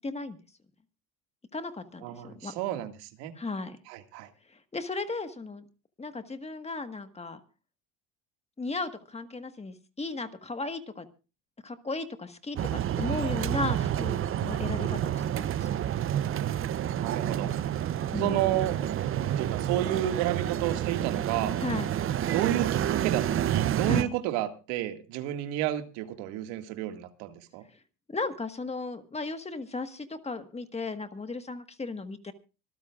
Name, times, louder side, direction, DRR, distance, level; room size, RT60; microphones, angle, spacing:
voice 1, 0.0-0.4 1.5-2.5 3.3-3.8 4.5-5.6 6.0-7.4 8.6-11.1 11.6-15.9 18.1-18.4 21.6-21.9 23.9-24.1 28.1-32.3, left 3 dB, 15° left, 9 dB, 1.5 m, -35 dB
voice 2, 2.0-3.3 3.9-4.3 17.0-17.5 18.2-18.8 19.2-21.5 22.3-27.6, right 13 dB, 75° right, 8 dB, 2.1 m, -31 dB
sound 1, 12.5-24.0, right 11 dB, 30° right, 0.7 m, -29 dB
25.5 x 14.0 x 2.4 m, 0.31 s
cardioid pair, 125°, 41 cm